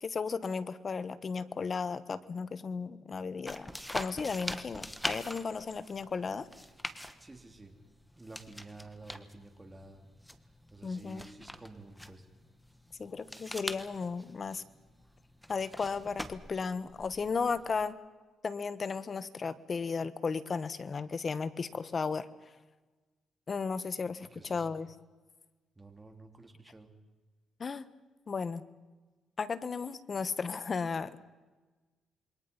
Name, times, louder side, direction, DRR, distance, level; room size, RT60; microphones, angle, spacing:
voice 1, 0.0-6.5 10.8-11.2 13.0-14.6 15.5-18.0 18.4-22.3 23.5-24.9 27.6-27.9 28.3-28.6 29.4-31.2, left 5 dB, 40° left, 14 dB, 1.4 m, -35 dB
sound 1, 3.5-17.9, equal, ahead, 1.5 m, -44 dB
voice 2, 7.2-7.7 8.2-10.1 10.7-12.3 23.9-24.8 25.8-26.9, right 2 dB, 20° right, 5 dB, 3.5 m, -51 dB
27.5 x 23.0 x 5.5 m, 1.2 s
cardioid pair, 90°, 0 cm